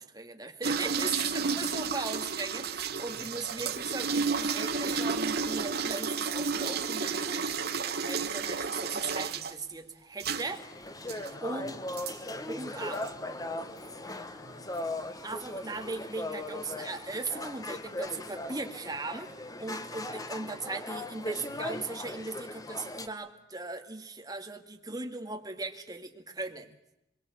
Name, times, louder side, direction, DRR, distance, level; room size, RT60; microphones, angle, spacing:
voice 1, 0.0-10.7 11.4-11.8 12.4-13.0 15.2-19.3 19.6-26.7, right 3 dB, 20° right, 4 dB, 2.1 m, -38 dB
sound 1, 0.6-9.5 10.2-10.5 11.1-11.3 12.0-12.2 12.9-13.1, right 5 dB, 60° right, 1.6 m, -32 dB
voice 2, 2.9-3.6 11.1-11.7 12.3-14.7 19.9-20.1 21.2-21.7, equal, 65° left, -1 dB, 7.7 m, -53 dB
sound 2, 10.4-23.1, left 2 dB, 20° left, 1.4 m, -39 dB
24.5 x 23.0 x 8.3 m, 0.85 s
head